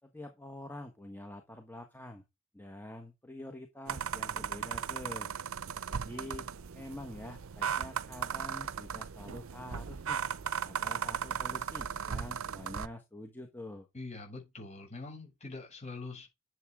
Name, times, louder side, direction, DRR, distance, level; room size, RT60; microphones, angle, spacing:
voice 1, 0.0-2.2 2.5-5.3 5.9-6.4 6.7-10.2 10.6-13.9, left 1 dB, 10° left, 1.2 m, -46 dB
sound 1, 3.9-12.9, right 7 dB, 75° right, 0.6 m, -37 dB
voice 2, 13.9-16.3, left 3 dB, 30° left, 6.8 m, -44 dB
10.5 x 7.4 x 3.6 m
head